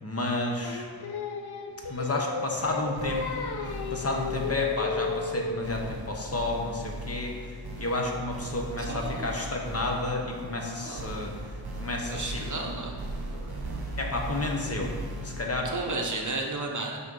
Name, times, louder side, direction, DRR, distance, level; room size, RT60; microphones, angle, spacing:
voice 1, 0.0-0.9 1.9-3.5 3.9-7.4 7.8-11.3 11.8-12.3 13.3-13.6 14.0-14.9 15.2-15.7, left 2 dB, 35° left, 1 dB, 0.9 m, -31 dB
Singing, 0.6-5.8, left 4 dB, 60° left, 0.7 m, -34 dB
sound 1, 2.5-16.2, right 1 dB, 60° right, 1.3 m, -38 dB
voice 2, 8.8-9.5 10.7-11.1 12.1-13.0 15.6-17.0, right 3 dB, 45° right, 0 dB, 0.9 m, -33 dB
6.1 x 5.4 x 5.4 m, 2.2 s
wide cardioid pair, 175°, 43 cm